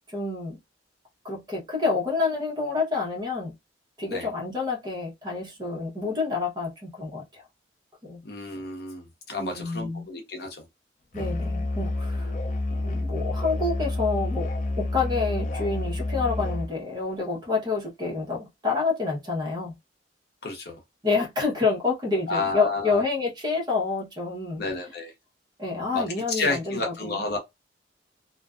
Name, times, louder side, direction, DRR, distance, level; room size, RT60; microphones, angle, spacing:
voice 1, 0.1-0.6 1.2-3.5 4.0-7.4 8.0-8.2 9.4-10.1 11.1-12.4 12.7-14.5 14.8-19.7 21.0-24.6 25.6-27.2, left 4 dB, 25° right, 0.9 m, -28 dB
voice 2, 8.2-10.6 20.4-20.8 22.3-23.0 24.6-25.1 25.9-27.4, left 3 dB, 60° left, 0.8 m, -31 dB
Musical instrument, 11.1-16.7, left 2 dB, 45° left, 0.4 m, -29 dB
2.5 x 2.2 x 2.3 m
head